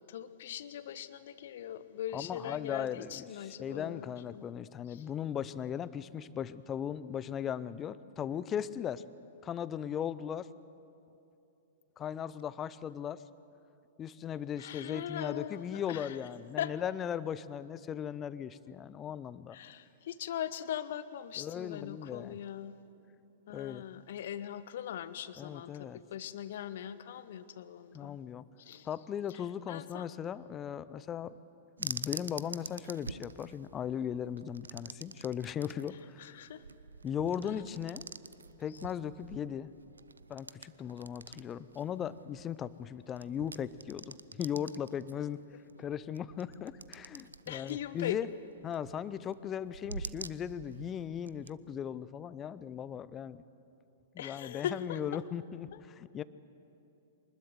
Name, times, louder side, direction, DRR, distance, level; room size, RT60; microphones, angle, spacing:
voice 1, 0.0-4.5 4.9-5.0 14.6-16.2 16.6-16.7 19.5-22.8 23.5-28.2 28.6-28.9 29.7-30.1 36.2-36.6 47.5-48.2 54.2-55.2, left 10 dB, 55° left, 14 dB, 1.0 m, -40 dB
voice 2, 2.1-9.0 9.4-10.5 12.0-13.2 14.0-19.6 21.4-22.4 23.5-23.8 25.4-26.0 27.9-28.4 28.8-31.4 31.8-36.3 37.0-38.0 38.6-39.7 40.3-45.4 45.8-48.3 48.6-53.4 54.1-56.2, left 9 dB, 25° left, 17 dB, 0.6 m, -38 dB
sound 1, 31.8-51.6, right 4 dB, 75° right, 0.6 m, -47 dB
24.5 x 20.5 x 8.0 m, 2.8 s
figure-of-eight pair, 105°, 0 cm